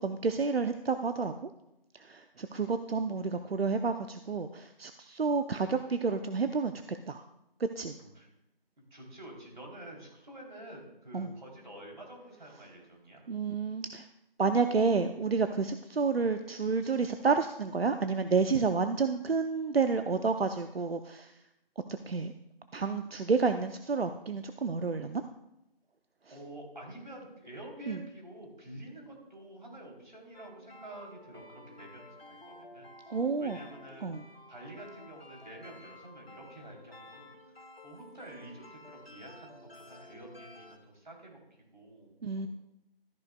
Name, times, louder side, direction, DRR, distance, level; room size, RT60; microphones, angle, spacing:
voice 1, 0.0-1.5 1.9-7.2 7.6-8.0 11.1-11.3 13.3-14.1 14.4-21.3 22.1-22.3 22.7-25.2 27.9-28.0 33.1-33.6 34.0-34.2 42.2-42.5, right 4 dB, 85° right, 8 dB, 0.7 m, -30 dB
voice 2, 8.9-13.3 26.3-32.9 33.4-34.1 34.5-41.4 41.7-42.2, right 1 dB, 50° right, 0 dB, 3.3 m, -48 dB
sound 1, 30.3-40.8, left 2 dB, 90° left, 1.7 m, -52 dB
14.0 x 9.9 x 2.3 m, 0.88 s
figure-of-eight pair, 175°, 29 cm